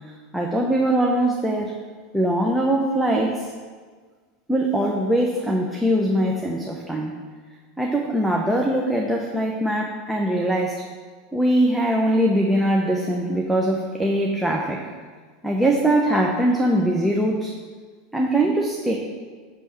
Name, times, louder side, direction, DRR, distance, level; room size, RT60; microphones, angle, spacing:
voice 1, 0.3-1.7 2.1-3.5 4.5-7.1 7.8-10.8 11.3-14.8 15.4-17.5 18.1-18.9, right 1 dB, 5° right, -1 dB, 0.9 m, -22 dB
10.0 x 3.5 x 6.5 m, 1.5 s
hypercardioid pair, 105°, 0 cm